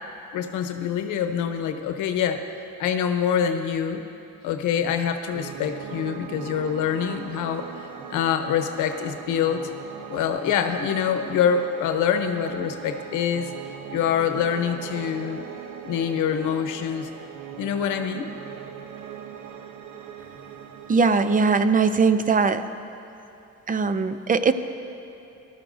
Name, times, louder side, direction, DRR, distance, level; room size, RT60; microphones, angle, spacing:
voice 1, 0.3-2.4 2.8-4.0 4.4-7.7 8.1-9.6 10.1-13.5 13.9-15.4 15.8-17.1 17.6-18.3, left 8 dB, 90° left, 7 dB, 0.9 m, -25 dB
Piano, 5.3-21.4, right 8 dB, 75° right, 0.8 m, -40 dB
voice 2, 20.9-22.7 23.7-24.5, right 4 dB, 30° right, 11 dB, 0.6 m, -20 dB
18.5 x 12.5 x 2.6 m, 2.9 s
cardioid pair, 90°, 30 cm